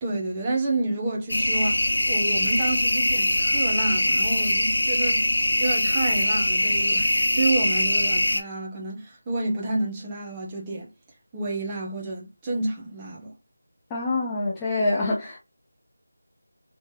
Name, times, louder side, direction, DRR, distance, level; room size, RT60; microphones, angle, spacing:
voice 1, 0.0-5.2 5.6-10.9 11.3-13.3, right 2 dB, 15° right, 0.8 m, -29 dB
sound 1, 1.3-8.4, left 1 dB, 80° left, 0.6 m, -22 dB
voice 2, 13.9-15.4, left 2 dB, 10° left, 0.5 m, -25 dB
3.2 x 2.8 x 3.1 m
figure-of-eight pair, 165°, 0 cm